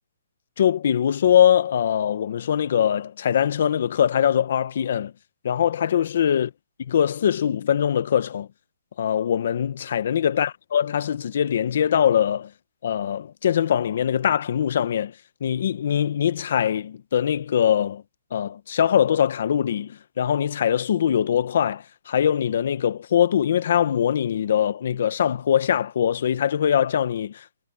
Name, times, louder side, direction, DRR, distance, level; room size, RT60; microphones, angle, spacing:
voice 1, 0.6-5.1 5.4-6.5 6.9-8.5 9.0-12.5 12.8-15.1 15.4-18.0 18.3-27.6, left 9 dB, 40° left, 1.0 m, -22 dB
hypercardioid pair, 175°, 0 cm